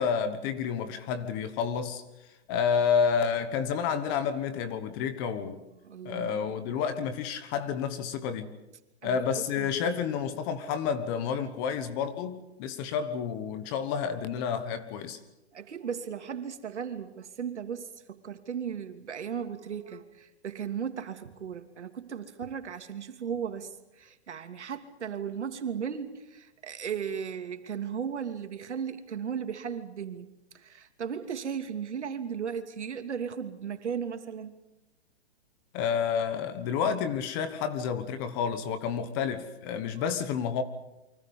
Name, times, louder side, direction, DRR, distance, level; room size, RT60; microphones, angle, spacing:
voice 1, 0.0-2.0 2.5-5.6 6.0-8.5 9.0-15.2 35.7-40.6, left 7 dB, 20° left, 1.3 m, -30 dB
voice 2, 5.8-6.5 9.0-9.7 15.5-23.7 24.0-30.3 30.5-34.6 40.0-40.2, right 7 dB, 90° right, 2.9 m, -36 dB
29.5 x 24.5 x 5.5 m
hypercardioid pair, 170°, 34 cm